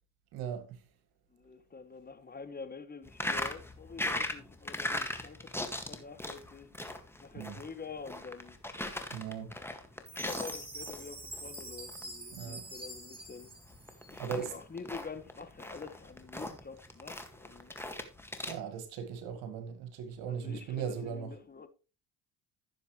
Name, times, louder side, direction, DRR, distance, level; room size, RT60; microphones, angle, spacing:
voice 1, 0.3-0.8 7.3-7.6 9.1-9.5 12.3-12.6 14.2-14.5 18.5-21.3, right 7 dB, 75° right, 1.9 m, -38 dB
voice 2, 1.3-8.6 10.1-13.5 14.1-17.7 20.3-21.7, left 5 dB, 25° left, 1.5 m, -47 dB
sound 1, 3.0-18.6, left 1 dB, 5° left, 1.9 m, -39 dB
Chime, 10.1-14.4, right 1 dB, 15° right, 5.1 m, -45 dB
14.0 x 7.1 x 3.2 m
supercardioid pair, 75°, 38 cm